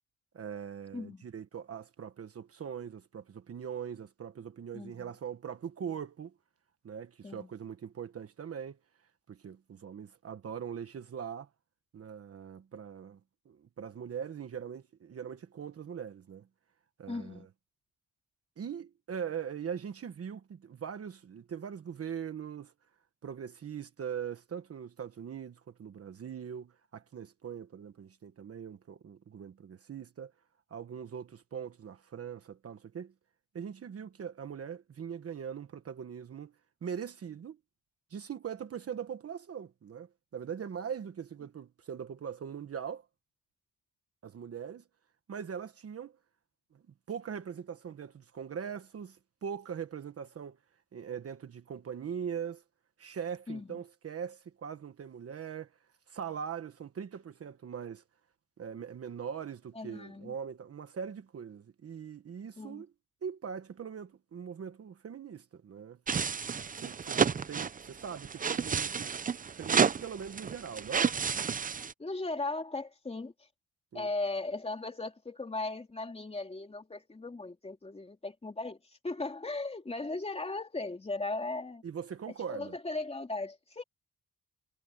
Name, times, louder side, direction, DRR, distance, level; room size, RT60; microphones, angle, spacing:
voice 1, 0.3-6.3 6.8-8.8 9.3-11.5 11.9-13.2 13.4-16.5 17.0-17.5 18.6-22.7 23.2-30.3 30.7-33.1 33.5-36.5 36.8-37.6 38.1-43.1 44.2-44.8 45.3-46.2 46.7-46.8 47.1-50.6 50.9-52.6 53.0-55.7 56.1-58.0 58.6-62.9 63.2-66.0 66.7-67.2 67.5-69.2 69.5-71.1 73.9-74.1 81.8-82.7, right 7 dB, 45° right, 1.3 m, -41 dB
voice 2, 0.9-1.2 4.7-5.1 7.2-7.5 17.1-17.5 53.5-53.8 59.7-60.3 62.6-62.8 72.0-73.3 73.9-78.8 79.0-81.8 82.5-83.8, left 2 dB, 20° left, 2.8 m, -37 dB
sound 1, 66.1-71.9, right 6 dB, 25° right, 0.5 m, -31 dB
wide cardioid pair, 145°, 34 cm